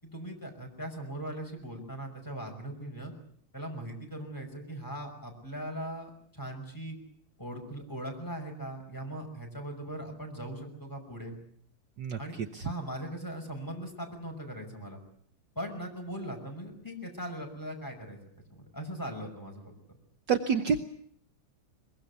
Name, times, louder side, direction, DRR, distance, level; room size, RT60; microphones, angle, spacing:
voice 1, 0.0-3.1 3.5-7.0 7.4-11.4 12.2-12.4 12.6-15.0 15.6-18.2 18.5-19.7, right 1 dB, 10° left, 2 dB, 5.9 m, -39 dB
voice 2, 20.3-20.8, right 6 dB, 60° right, 7 dB, 1.7 m, -26 dB
23.5 x 21.5 x 8.3 m, 0.63 s
omnidirectional pair, 2.3 m